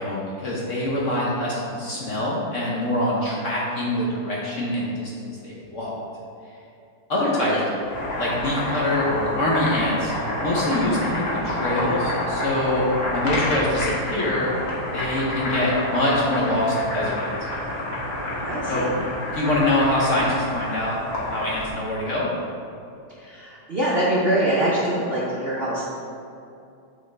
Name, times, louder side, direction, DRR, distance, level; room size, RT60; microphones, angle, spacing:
voice 1, 0.0-5.9 7.1-7.5 8.1-10.1 10.4-12.8 13.1-14.5 14.9-17.3 18.7-18.8 19.3-21.0 21.2-22.3, left 1 dB, 55° left, -5 dB, 0.9 m, -24 dB
voice 2, 7.2-7.6 18.4-18.9 23.2-25.8, right 1 dB, 50° right, -7 dB, 0.7 m, -24 dB
Boiling, 7.7-21.8, left 1 dB, 40° left, 1.2 m, -28 dB
8.6 x 4.0 x 3.3 m, 2.6 s
omnidirectional pair, 2.0 m